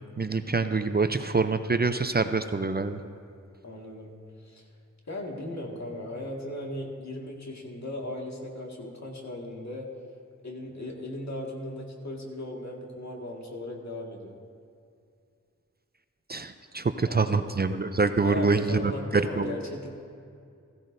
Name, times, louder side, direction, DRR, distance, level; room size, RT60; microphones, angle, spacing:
voice 1, 0.2-3.0 16.3-19.6, right 4 dB, 35° right, 9 dB, 0.5 m, -26 dB
voice 2, 3.6-4.6 5.1-9.9 10.4-14.3 17.1-17.4 18.1-19.9, left 1 dB, 65° left, -1 dB, 2.0 m, -37 dB
16.0 x 15.0 x 2.6 m, 2.4 s
wide cardioid pair, 65°, 30 cm